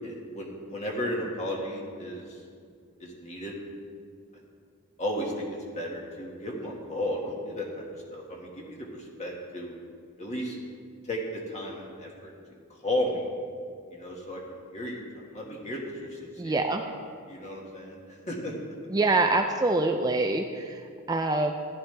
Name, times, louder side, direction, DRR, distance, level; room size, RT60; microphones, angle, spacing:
voice 1, 0.0-2.4 3.0-3.5 5.0-5.4 5.7-7.8 8.1-9.8 10.2-10.6 11.0-12.3 12.8-13.3 13.9-16.6 17.3-18.5, equal, 35° left, -2 dB, 1.9 m, -34 dB
voice 2, 16.4-16.8 18.9-21.5, right 2 dB, 20° right, 4 dB, 0.4 m, -25 dB
14.5 x 11.0 x 3.4 m, 2.2 s
head